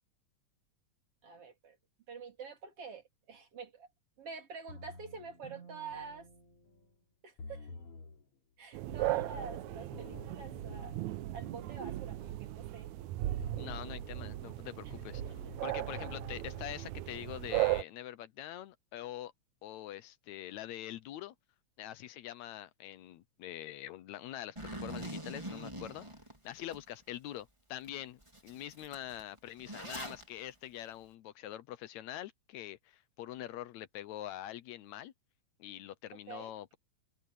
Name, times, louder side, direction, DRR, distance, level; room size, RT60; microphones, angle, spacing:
voice 1, 1.2-1.8 2.1-3.9 4.2-6.3 7.2-7.7 8.6-11.0 11.3-12.9 14.8-14.9 15.4-15.5 36.1-36.5, right 5 dB, 50° right, 4.3 m, -47 dB
sound 1, 4.7-6.9 7.4-8.2 8.9-13.0 13.4-14.2 14.9-16.7, left 2 dB, 50° left, 4.1 m, -51 dB
sound 2, 8.7-17.8, right 17 dB, 85° right, 2.1 m, -37 dB
voice 2, 13.6-19.3 19.6-21.3 21.8-26.1 26.4-35.1 35.6-36.8, left 13 dB, 75° left, 2.0 m, -44 dB
Zipper (clothing), 24.6-26.8 27.3-27.4 27.8-28.0 28.2-30.2, right 1 dB, 10° right, 3.5 m, -43 dB
omnidirectional pair, 3.3 m